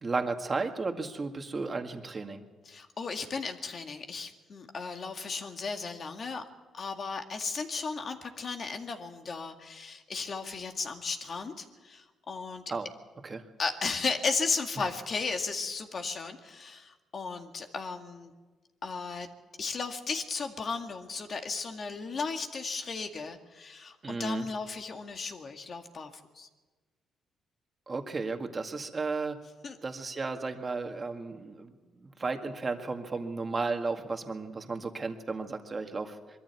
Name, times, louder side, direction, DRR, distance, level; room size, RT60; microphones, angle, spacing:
voice 1, 0.0-2.4 12.7-12.9 13.2-13.4 14.8-14.9 24.0-24.5 27.9-29.4 29.8-31.7 32.0-36.2, right 3 dB, 30° right, 5 dB, 2.0 m, -34 dB
voice 2, 2.7-6.4 6.7-12.6 13.6-18.3 18.8-19.3 19.6-26.5 29.6-29.8, left 4 dB, 45° left, 5 dB, 2.0 m, -35 dB
22.5 x 14.0 x 8.4 m, 1.3 s
cardioid pair, 90°, 0 cm